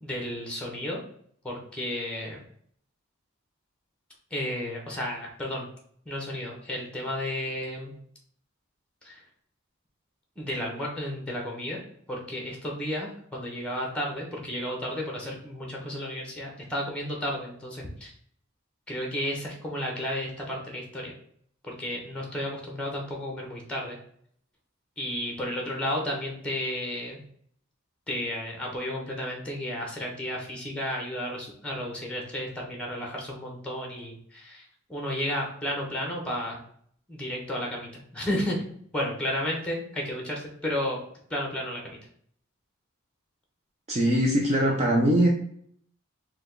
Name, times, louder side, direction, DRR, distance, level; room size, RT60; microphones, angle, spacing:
voice 1, 0.0-1.0 1.4-2.4 4.3-5.7 6.1-7.9 9.0-9.2 10.4-11.8 12.1-18.1 18.9-21.1 21.6-24.0 25.0-27.2 28.1-36.6 37.1-38.6 38.9-41.0 41.3-42.0, equal, 5° left, 0 dB, 0.9 m, -32 dB
voice 2, 43.9-45.3, right 1 dB, 30° right, -1 dB, 0.6 m, -22 dB
4.9 x 2.3 x 3.7 m, 0.63 s
head